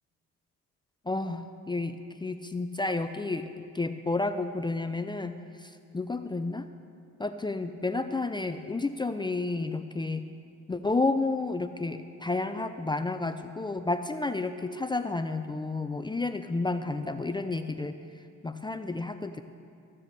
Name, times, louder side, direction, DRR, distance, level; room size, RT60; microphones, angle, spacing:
voice 1, 1.1-6.6 7.2-10.3 10.7-18.0 18.4-19.4, left 3 dB, 15° left, 8 dB, 0.5 m, -31 dB
14.5 x 7.6 x 6.7 m, 2.4 s
cardioid pair, 90°, 30 cm